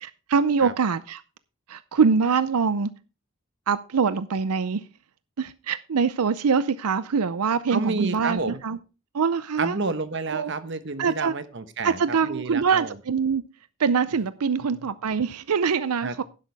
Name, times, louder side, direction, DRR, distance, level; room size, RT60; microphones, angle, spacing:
voice 1, 0.0-1.2 1.7-2.9 3.7-4.9 5.4-8.8 9.1-9.8 10.3-10.5 11.0-11.3 11.8-13.4 13.8-16.2, right 5 dB, 90° right, 0.5 m, -24 dB
voice 2, 7.7-8.6 9.6-12.9 14.8-14.9 16.0-16.2, right 3 dB, 55° right, 1.1 m, -30 dB
11.5 x 11.0 x 3.4 m
head